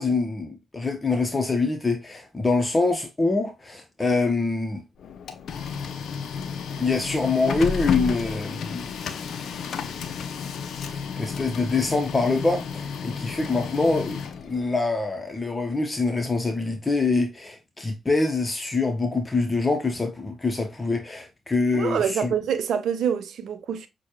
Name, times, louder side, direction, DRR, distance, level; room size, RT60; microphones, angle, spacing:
voice 1, 0.0-4.8 6.8-8.8 10.9-22.3, left 3 dB, 30° left, 0.8 m, -25 dB
Printer, 5.0-14.8, left 6 dB, 70° left, 0.5 m, -32 dB
voice 2, 21.7-23.9, right 8 dB, 70° right, 0.5 m, -26 dB
6.2 x 2.2 x 2.9 m
hypercardioid pair, 40°, 0 cm